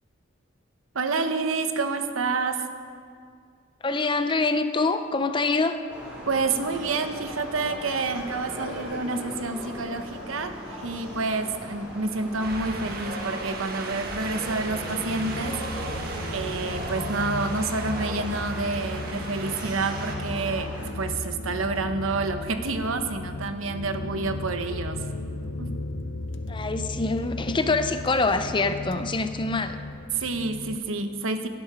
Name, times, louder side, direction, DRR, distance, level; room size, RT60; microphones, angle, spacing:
voice 1, 0.9-2.6 6.3-25.0 25.6-25.7 30.1-31.5, right 3 dB, 90° right, 8 dB, 1.1 m, -29 dB
voice 2, 3.8-5.8 26.5-29.8, left 3 dB, 25° left, 10 dB, 0.6 m, -25 dB
sound 1, 5.9-20.9, equal, 5° right, 4.6 m, -40 dB
Wind, 12.4-20.2, right 2 dB, 50° right, 1.5 m, -36 dB
sound 2, 14.5-30.8, left 2 dB, 65° left, 0.8 m, -35 dB
16.0 x 11.5 x 5.0 m, 2.2 s
head